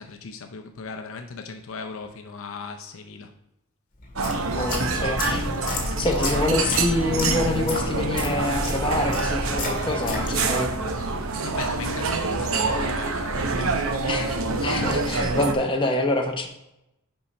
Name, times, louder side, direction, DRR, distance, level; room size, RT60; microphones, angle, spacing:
voice 1, 0.0-3.3 4.6-5.1 11.4-14.0, left 4 dB, 65° left, 5 dB, 0.5 m, -38 dB
sound 1, 4.0-10.7, left 2 dB, 40° left, 1.8 m, -32 dB
sound 2, 4.2-15.5, right 3 dB, 70° right, 0.7 m, -26 dB
voice 2, 4.5-10.7 14.1-16.5, left 2 dB, 25° left, 2 dB, 0.8 m, -26 dB
5.5 x 5.5 x 4.1 m, 0.87 s
head